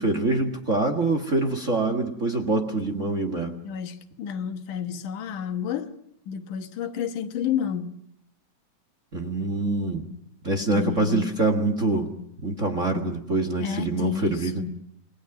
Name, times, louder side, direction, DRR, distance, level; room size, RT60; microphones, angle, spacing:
voice 1, 0.0-3.6 9.1-10.1 10.4-12.1 12.4-14.6, right 2 dB, 30° right, 1.5 m, -25 dB
voice 2, 3.6-5.9 6.3-8.0 10.7-11.3 13.6-14.7, left 8 dB, 85° left, 2.8 m, -30 dB
28.5 x 20.0 x 6.0 m
omnidirectional pair, 3.5 m